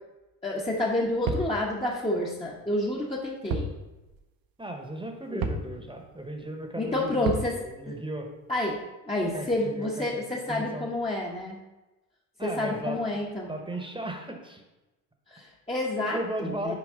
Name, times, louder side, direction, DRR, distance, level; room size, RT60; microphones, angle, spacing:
voice 1, 0.4-3.7 5.3-5.5 6.8-7.9 8.5-8.8 9.0-11.6 12.4-13.5 15.3-16.7, left 1 dB, 15° left, -4 dB, 1.0 m, -29 dB
sound 1, 1.3-1.6 3.5-3.8 4.1-4.2 5.4-5.7 7.3-7.5, right 3 dB, 55° right, 0.9 m, -29 dB
voice 2, 4.6-8.3 9.3-10.2 10.5-10.9 12.4-14.6 16.1-16.7, right 1 dB, 10° right, 3 dB, 1.1 m, -36 dB
6.4 x 4.7 x 3.7 m, 1.1 s
supercardioid pair, 70°, 41 cm